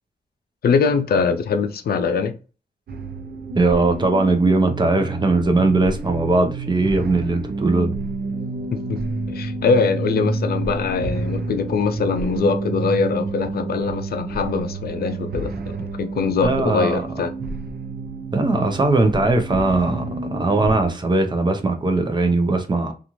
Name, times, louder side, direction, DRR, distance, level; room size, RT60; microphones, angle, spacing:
voice 1, 0.6-2.4 8.9-9.0 9.3-17.3, left 5 dB, 75° left, 0.4 m, -22 dB
sound 1, 2.9-20.9, right 3 dB, 75° right, 0.5 m, -29 dB
voice 2, 3.5-7.9 16.4-17.0 18.3-22.9, right 2 dB, 30° right, 0.6 m, -19 dB
2.5 x 2.4 x 2.9 m
wide cardioid pair, 110°, 16 cm